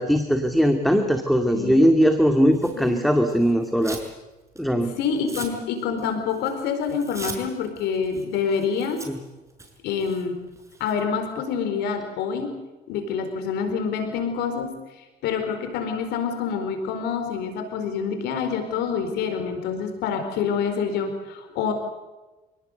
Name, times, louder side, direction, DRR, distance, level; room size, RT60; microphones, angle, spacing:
voice 1, 0.0-4.0 4.6-5.0 9.1-9.2, equal, ahead, 5 dB, 2.2 m, -20 dB
voice 2, 1.5-1.9 2.8-3.0 4.8-9.0 9.8-10.4 10.8-12.5 12.9-14.7 15.2-21.7, left 6 dB, 85° left, 6 dB, 4.5 m, -27 dB
Tearing, 2.5-4.1 4.5-11.0, right 3 dB, 15° right, 6.2 m, -41 dB
27.5 x 18.5 x 8.1 m, 1.2 s
cardioid pair, 110°, 17 cm